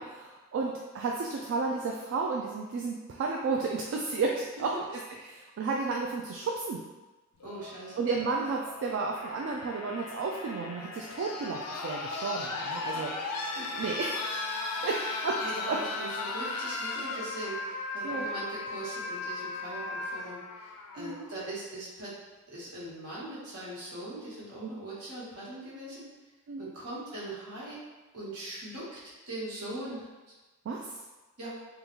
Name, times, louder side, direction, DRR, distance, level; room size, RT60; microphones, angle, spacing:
voice 1, 0.0-4.7 5.2-6.8 8.0-13.1 13.8-14.3 14.8-15.4 15.7-15.8 18.0-18.3 21.0-21.3 26.5-26.7 30.7-30.9, right 4 dB, 60° right, -1 dB, 0.3 m, -32 dB
sound 1, 7.4-21.4 22.6-22.7, left 3 dB, 90° left, 0.4 m, -37 dB
voice 2, 7.4-8.0 12.9-13.2 13.6-13.8 14.9-22.1 22.5-26.1 26.6-27.8 28.1-30.1 31.4-31.5, right 1 dB, 75° right, -8 dB, 1.3 m, -41 dB
3.6 x 2.3 x 3.0 m, 1.2 s
head